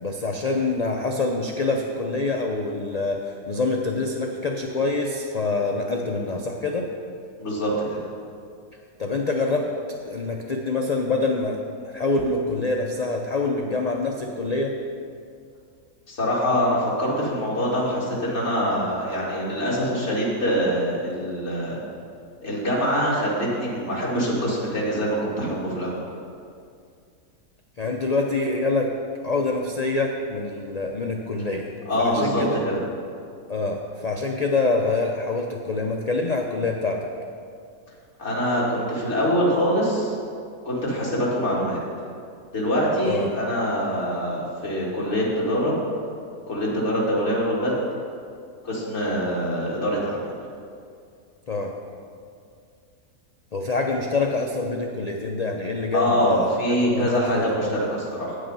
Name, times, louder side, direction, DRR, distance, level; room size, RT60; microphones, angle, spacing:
voice 1, 0.0-6.9 9.0-9.7 10.0-11.6 11.8-14.7 27.8-29.0 29.2-31.7 32.0-32.6 33.5-37.1 43.0-43.3 51.5-51.7 53.5-56.4 56.7-57.8, left 3 dB, 70° left, 1 dB, 0.3 m, -25 dB
voice 2, 7.4-8.0 16.1-21.8 22.4-26.0 31.9-32.7 38.2-40.1 40.6-41.8 42.5-45.7 46.5-47.7 48.6-50.3 55.9-58.4, equal, 50° left, -6 dB, 2.4 m, -24 dB
9.1 x 6.5 x 5.4 m, 2.3 s
omnidirectional pair, 1.5 m